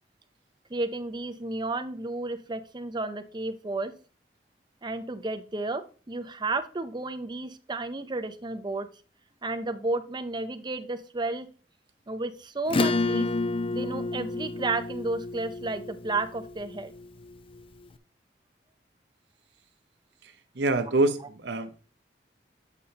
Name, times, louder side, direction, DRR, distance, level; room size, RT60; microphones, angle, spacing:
voice 1, 0.7-3.9 4.8-8.9 9.4-11.5 12.1-13.3 13.7-16.9, right 2 dB, 25° right, 9 dB, 0.6 m, -32 dB
Acoustic guitar / Strum, 12.7-17.6, left 3 dB, 30° left, 0.5 m, -30 dB
voice 2, 20.5-21.8, right 2 dB, 75° right, 9 dB, 0.8 m, -25 dB
8.3 x 5.4 x 2.9 m, 0.37 s
head